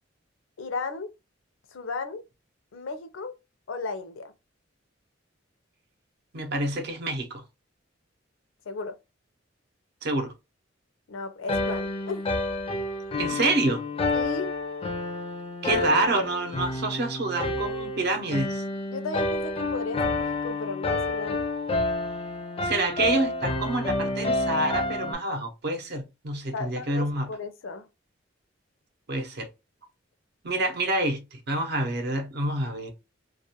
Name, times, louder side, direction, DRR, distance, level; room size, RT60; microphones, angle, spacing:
voice 1, 0.6-1.1 1.7-2.2 2.7-3.3 3.7-4.3 8.7-9.0 11.1-12.2 14.1-14.5 18.9-21.4 26.5-27.9, left 3 dB, 85° left, 0.5 m, -35 dB
voice 2, 6.3-7.4 10.0-10.3 13.2-13.8 15.6-18.6 22.6-27.3 29.1-29.5 30.4-32.9, right 2 dB, 60° right, 0.6 m, -27 dB
sound 1, 11.5-25.1, left 2 dB, 30° left, 0.4 m, -29 dB
2.3 x 2.2 x 2.7 m
head